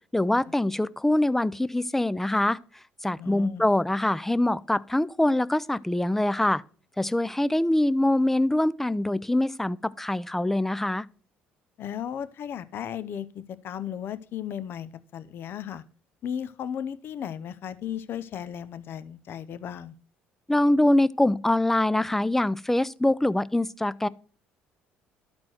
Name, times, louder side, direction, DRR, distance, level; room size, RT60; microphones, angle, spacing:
voice 1, 0.1-2.6 3.0-6.6 7.0-11.1 20.5-24.1, left 1 dB, 5° left, 0.4 m, -24 dB
voice 2, 3.2-3.6 11.8-15.8 16.2-19.9, left 9 dB, 60° left, 0.7 m, -35 dB
12.5 x 4.4 x 4.4 m
supercardioid pair, 75°, 4 cm